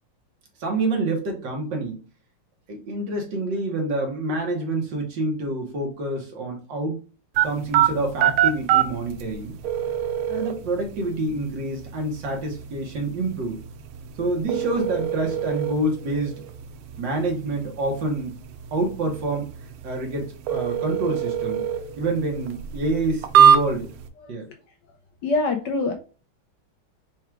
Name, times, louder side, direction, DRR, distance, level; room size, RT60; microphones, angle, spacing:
voice 1, 0.6-2.0 2.7-7.0 7.4-9.6 10.3-13.6 14.2-16.4 17.0-18.4 18.7-19.5 19.8-21.7 22.0-23.9 24.3-24.5, right 2 dB, 65° right, 2 dB, 1.7 m, -27 dB
sound 1, 7.4-24.1, right 9 dB, 85° right, 1.4 m, -25 dB
voice 2, 25.2-25.9, left 3 dB, 70° left, 5 dB, 1.1 m, -23 dB
4.7 x 2.4 x 4.5 m, 0.35 s
omnidirectional pair, 2.3 m